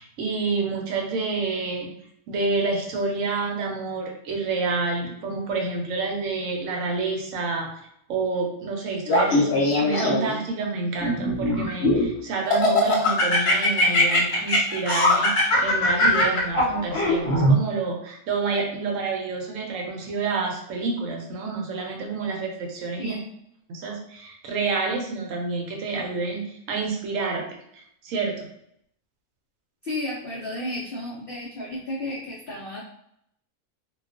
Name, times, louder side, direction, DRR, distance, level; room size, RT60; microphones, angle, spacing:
voice 1, 0.0-1.9 2.3-7.7 8.1-23.2 23.7-28.5, right 4 dB, 70° right, 1 dB, 0.9 m, -28 dB
Laughter, 9.1-10.4 11.0-12.1 12.5-17.5, left 1 dB, 55° left, 0.8 m, -21 dB
voice 2, 23.0-23.3 29.8-32.8, left 1 dB, 75° left, -4 dB, 0.5 m, -33 dB
2.3 x 2.2 x 2.4 m, 0.74 s
omnidirectional pair, 1.5 m